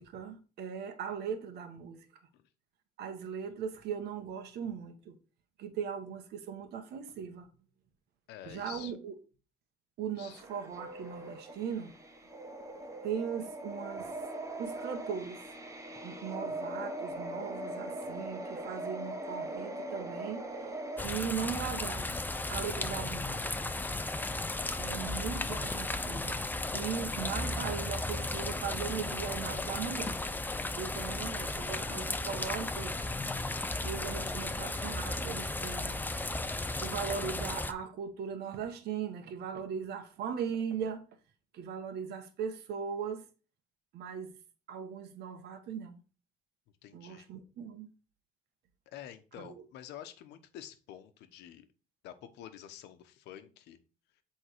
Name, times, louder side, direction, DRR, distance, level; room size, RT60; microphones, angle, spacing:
voice 1, 0.0-2.0 3.0-5.2 5.6-7.5 8.4-9.1 10.0-12.0 13.0-14.1 14.6-15.5 16.0-20.5 21.0-22.2 22.5-23.5 24.8-26.5 26.7-30.2 30.8-33.1 33.8-36.0 36.8-41.0 41.5-43.2 43.9-44.4 44.7-46.0 46.9-47.9 49.4-49.6, right 7 dB, 75° right, 1.4 m, -39 dB
voice 2, 8.3-8.9 10.2-10.4 46.8-47.3 48.9-51.7 52.0-53.8, left 11 dB, 85° left, 1.0 m, -48 dB
sound 1, 10.2-21.0, right 1 dB, 20° right, 1.3 m, -41 dB
sound 2, 21.0-37.7, left 2 dB, 10° left, 0.6 m, -35 dB
8.1 x 3.7 x 4.5 m
cardioid pair, 110°, 17 cm